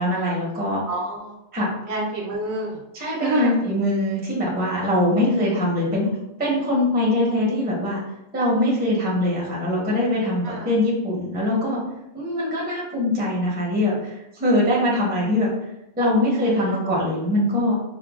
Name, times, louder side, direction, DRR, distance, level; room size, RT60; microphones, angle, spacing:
voice 1, 0.0-0.8 1.5-1.7 2.9-6.1 6.4-8.0 8.3-11.8 12.1-15.5 16.0-17.8, left 1 dB, 10° right, -5 dB, 0.6 m, -22 dB
voice 2, 0.9-1.3 1.9-2.8 3.2-3.5 10.4-10.7 16.4-16.8, right 2 dB, 70° right, -1 dB, 1.0 m, -27 dB
5.1 x 2.2 x 2.3 m, 0.87 s
omnidirectional pair, 1.6 m